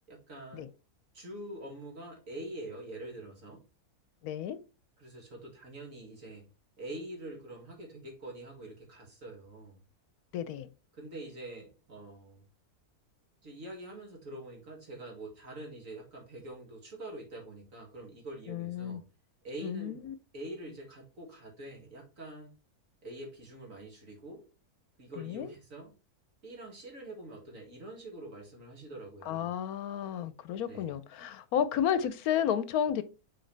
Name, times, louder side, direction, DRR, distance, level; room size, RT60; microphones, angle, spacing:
voice 1, 0.1-0.7 1.1-3.6 5.0-6.4 6.8-9.8 10.9-12.4 13.4-19.0 19.4-20.1 20.3-22.5 23.0-24.4 25.0-25.9 26.4-29.6 30.7-30.9, right 1 dB, 55° right, 2.5 m, -45 dB
voice 2, 4.2-4.6 10.3-10.7 18.5-19.0 19.6-20.1 25.2-25.5 29.2-33.0, left 9 dB, 75° left, 1.1 m, -32 dB
6.4 x 4.5 x 3.3 m
omnidirectional pair, 1.6 m